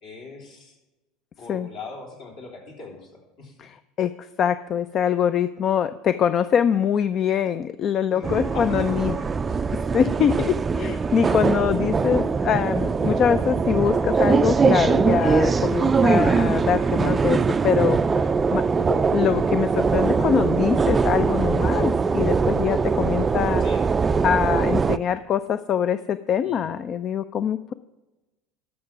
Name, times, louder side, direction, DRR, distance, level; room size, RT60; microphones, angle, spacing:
voice 1, 0.0-0.8 1.4-3.6 8.1-9.7 15.5-15.7 18.9-19.1 23.6-23.8 26.4-26.7, left 3 dB, 65° left, -2 dB, 3.4 m, -41 dB
voice 2, 3.6-9.2 9.9-23.6 24.2-27.7, left 8 dB, 45° left, 13 dB, 0.4 m, -24 dB
sound 1, 8.2-25.0, right 5 dB, 25° right, 0.4 m, -22 dB
12.5 x 6.0 x 5.9 m, 1.1 s
hypercardioid pair, 80°, 0 cm